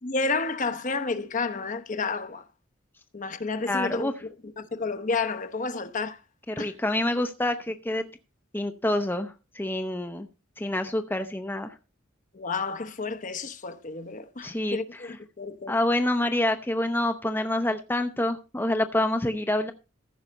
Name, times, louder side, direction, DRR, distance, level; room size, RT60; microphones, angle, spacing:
voice 1, 0.0-2.4 3.1-4.3 4.6-6.2 6.6-6.7 12.3-15.8, left 4 dB, 40° left, 0.9 m, -31 dB
voice 2, 3.7-4.1 6.5-8.0 8.5-10.3 10.6-11.7 14.4-14.8 15.7-19.7, left 1 dB, 10° left, 0.6 m, -27 dB
14.5 x 5.5 x 5.2 m
head